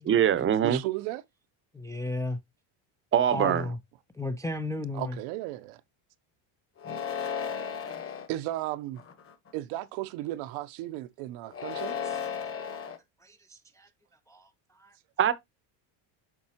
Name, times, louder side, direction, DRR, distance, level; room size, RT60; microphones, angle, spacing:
voice 1, 0.1-0.8 3.1-3.6 15.2-15.3, right 9 dB, 25° right, 0.6 m, -23 dB
voice 2, 0.6-1.2 3.3-3.7 4.9-5.8 7.6-7.7 8.3-9.0 9.5-11.9, right 16 dB, 80° right, 0.8 m, -35 dB
voice 3, 1.7-2.4 3.3-3.8 4.1-5.2 12.1-12.2 12.8-12.9 13.2-13.9 14.3-14.5 14.7-14.9, left 1 dB, 10° left, 0.3 m, -34 dB
sound 1, 6.8-8.3 9.0-9.5 11.5-13.0, left 7 dB, 25° left, 1.1 m, -34 dB
7.2 x 4.6 x 2.8 m
cardioid pair, 125°, 49 cm